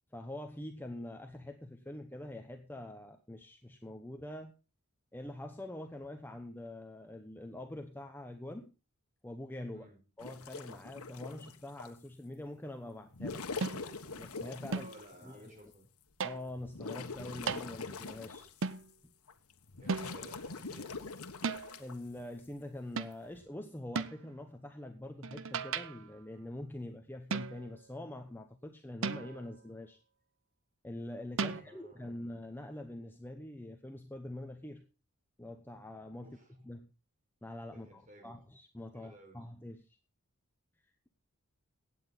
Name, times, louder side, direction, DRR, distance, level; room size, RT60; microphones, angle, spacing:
voice 1, 0.1-4.5 5.1-8.7 9.2-9.9 10.2-13.5 14.2-14.9 15.2-15.6 16.2-18.5 19.0-19.1 21.8-30.0 30.8-34.8 35.4-36.4 36.6-36.9 37.4-39.9, left 1 dB, 10° left, 0.9 m, -45 dB
sound 1, 10.2-11.9 13.0-15.1 15.7-15.8 16.3-18.8 19.3-21.9 23.1-23.4, left 4 dB, 80° left, 1.3 m, -43 dB
sound 2, 13.6-14.0 14.7-15.1 16.2-16.6 17.5-17.7 18.6-18.9 19.9-20.4 21.4-21.8 23.0-23.3 23.9-24.3 25.2-26.1 27.3-27.8 29.0-29.6 31.4-31.6, right 4 dB, 60° right, 0.7 m, -36 dB
voice 2, 14.7-15.9 19.8-21.1 31.5-32.2 36.2-36.6 37.7-38.4 38.9-39.5, right 1 dB, 35° right, 4.4 m, -56 dB
16.0 x 9.1 x 4.0 m
head